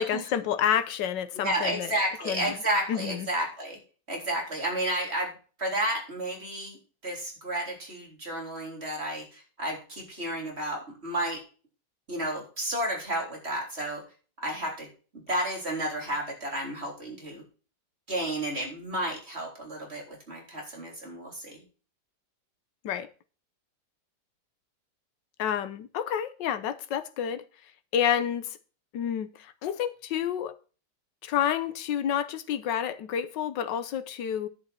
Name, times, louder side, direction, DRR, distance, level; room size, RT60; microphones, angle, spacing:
voice 1, 0.0-1.9 2.3-2.6 2.9-3.3 22.8-23.1 25.4-27.4 27.9-28.5 28.9-30.5 31.2-34.5, left 9 dB, 85° left, 1.5 m, -29 dB
voice 2, 1.4-3.8 4.1-5.3 5.6-6.8 7.0-11.4 12.1-14.0 14.4-14.9 15.3-17.4 18.1-21.6, right 1 dB, 35° right, 4.0 m, -31 dB
10.5 x 8.6 x 4.2 m
omnidirectional pair, 1.9 m